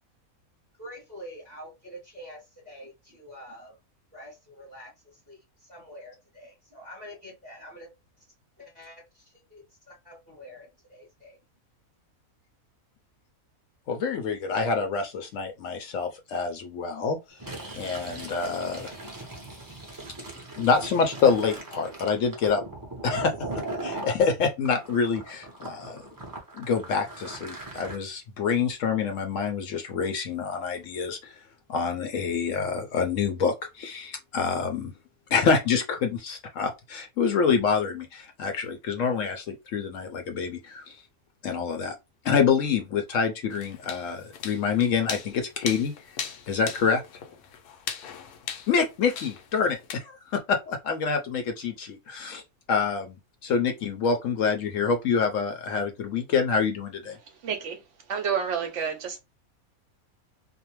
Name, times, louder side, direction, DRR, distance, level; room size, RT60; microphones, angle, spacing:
voice 1, 0.8-3.8 4.1-7.9 8.6-11.4, equal, 5° left, 0.7 m, -46 dB
voice 2, 13.9-17.2 17.8-18.9 20.6-22.6 23.0-23.3 23.8-26.0 26.6-31.3 31.7-34.9 35.3-41.0 41.4-41.9 42.2-45.9 46.5-47.0 48.7-52.4 52.7-53.2 53.4-57.2, left 5 dB, 70° left, 0.8 m, -26 dB
Fill (with liquid), 17.3-24.1 24.6-28.0, right 2 dB, 25° right, 0.4 m, -39 dB
sound 1, 43.5-49.9, left 7 dB, 90° left, 1.1 m, -39 dB
voice 3, 57.4-57.8 58.1-59.2, right 7 dB, 65° right, 0.8 m, -29 dB
2.6 x 2.1 x 2.9 m
omnidirectional pair, 1.6 m